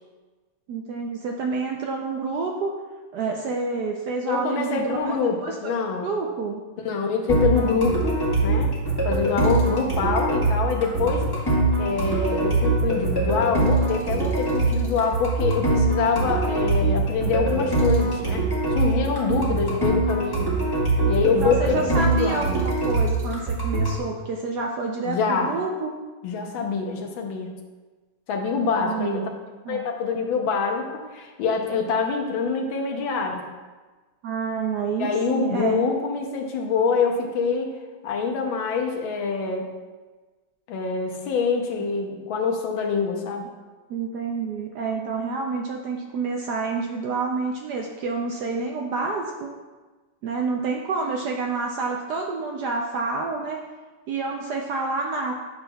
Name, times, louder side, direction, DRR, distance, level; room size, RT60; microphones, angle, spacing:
voice 1, 0.7-2.7 3.1-5.1 5.4-5.7 6.0-6.6 19.2-19.5 21.2-25.9 28.8-29.3 29.7-29.9 34.2-35.8 43.9-49.5 50.2-53.6 54.1-55.3, right 4 dB, 75° right, 1 dB, 1.0 m, -28 dB
voice 2, 4.3-6.1 6.8-8.7 9.0-11.2 11.8-20.5 21.1-22.5 25.0-25.5 26.2-27.5 28.3-29.3 29.7-33.4 35.0-37.7 38.0-39.7 40.7-43.4, left 5 dB, 80° left, 2 dB, 1.6 m, -25 dB
sound 1, 7.3-24.0, right 2 dB, 15° left, 0.9 m, -23 dB
8.5 x 6.0 x 2.3 m, 1.3 s
omnidirectional pair, 2.2 m